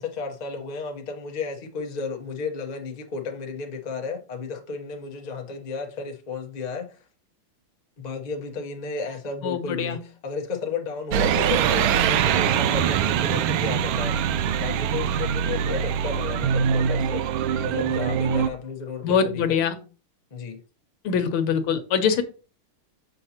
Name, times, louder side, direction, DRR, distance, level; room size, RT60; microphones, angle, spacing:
voice 1, 0.0-7.0 8.0-17.2 17.6-19.7 20.3-20.6, left 5 dB, 55° left, 0.4 m, -33 dB
voice 2, 9.4-10.0 19.0-19.7 21.0-22.2, left 7 dB, 80° left, 1.7 m, -23 dB
sound 1, 11.1-18.5, right 8 dB, 75° right, 1.3 m, -23 dB
6.8 x 5.3 x 2.8 m
omnidirectional pair, 2.4 m